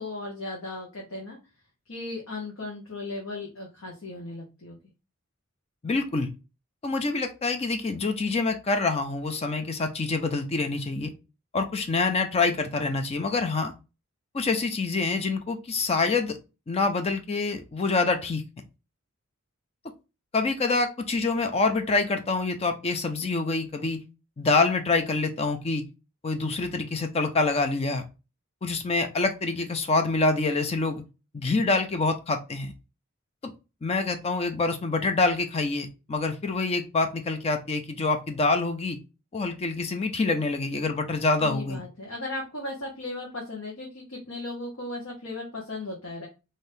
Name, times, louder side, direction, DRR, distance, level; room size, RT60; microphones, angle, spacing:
voice 1, 0.0-1.4 1.9-4.8 41.4-46.3, left 2 dB, 75° left, -2 dB, 1.0 m, -36 dB
voice 2, 5.8-6.3 6.8-11.1 11.5-13.7 14.3-16.4 16.7-18.4 20.3-24.0 24.4-25.8 26.2-28.0 28.6-31.0 31.3-32.7 33.4-33.5 33.8-39.0 39.3-41.8, left 3 dB, 30° left, 7 dB, 0.4 m, -26 dB
3.4 x 2.7 x 2.6 m, 0.29 s
head